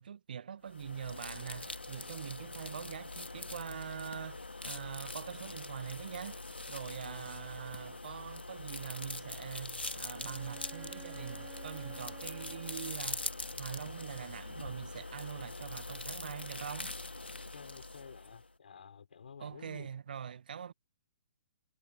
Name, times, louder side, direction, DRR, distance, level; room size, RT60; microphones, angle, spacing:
voice 1, 0.0-6.4 6.7-16.9 19.4-20.7, right 8 dB, 60° right, 1.2 m, -43 dB
sound 1, 0.7-18.5, left 2 dB, 80° left, 2.1 m, -43 dB
Bowed string instrument, 10.1-13.6, right 19 dB, 25° right, 0.9 m, -53 dB
voice 2, 17.5-19.9, left 6 dB, 60° left, 4.5 m, -52 dB
figure-of-eight pair, 125°, 6 cm